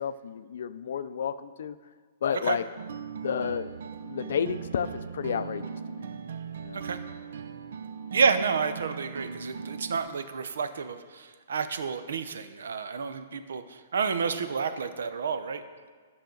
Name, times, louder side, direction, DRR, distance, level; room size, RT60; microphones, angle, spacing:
voice 1, 0.0-1.8 2.2-2.6 3.2-3.7 4.0-6.1 6.6-6.8, left 7 dB, 55° left, 13 dB, 0.4 m, -31 dB
sound 1, 2.8-10.0, right 6 dB, 60° right, 0.5 m, -39 dB
voice 2, 8.1-15.6, right 5 dB, 90° right, 10 dB, 0.7 m, -30 dB
12.5 x 5.9 x 3.9 m, 1.5 s
hypercardioid pair, 180°, 0 cm